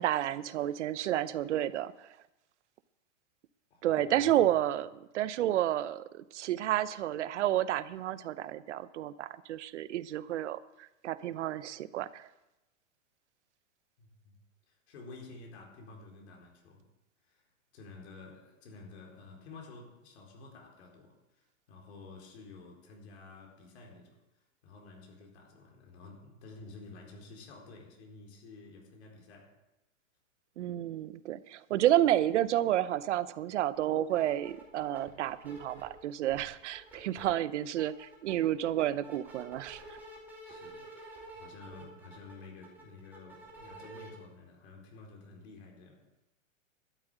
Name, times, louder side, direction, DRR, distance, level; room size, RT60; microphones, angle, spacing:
voice 1, 0.0-2.1 3.8-12.3 30.6-39.8, right 12 dB, 60° right, 16 dB, 0.8 m, -30 dB
voice 2, 3.7-4.2 14.0-14.4 14.7-16.9 17.2-17.4 17.7-24.2 24.6-29.6 37.2-37.3 40.4-46.1, left 3 dB, 55° left, 0 dB, 4.3 m, -51 dB
sound 1, 33.7-33.8 34.1-36.0 36.3-37.3 37.6-44.1, right 2 dB, 5° right, 2.3 m, -49 dB
12.5 x 7.6 x 9.2 m, 0.94 s
supercardioid pair, 170°, 39 cm